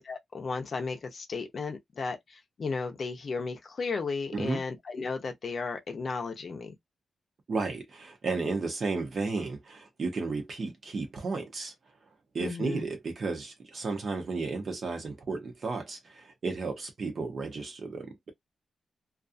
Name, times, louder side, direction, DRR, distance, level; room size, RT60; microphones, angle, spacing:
voice 1, 0.0-6.7 12.4-12.9, left 4 dB, 45° left, 0.6 m, -34 dB
voice 2, 7.5-11.7 12.3-18.3, right 4 dB, 45° right, 0.8 m, -33 dB
2.5 x 2.3 x 2.5 m
wide cardioid pair, 170°, 0 cm